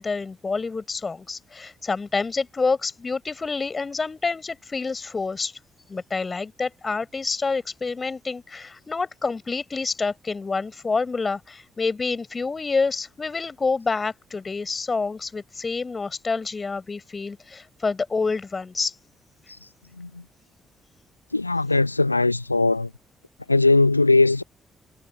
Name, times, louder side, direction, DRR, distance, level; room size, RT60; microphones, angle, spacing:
voice 1, 0.0-5.6 5.9-18.9, left 4 dB, 30° left, 5.2 m, -28 dB
voice 2, 21.3-22.9 23.5-24.4, left 3 dB, 90° left, 0.9 m, -19 dB
figure-of-eight pair, 40°, 0 cm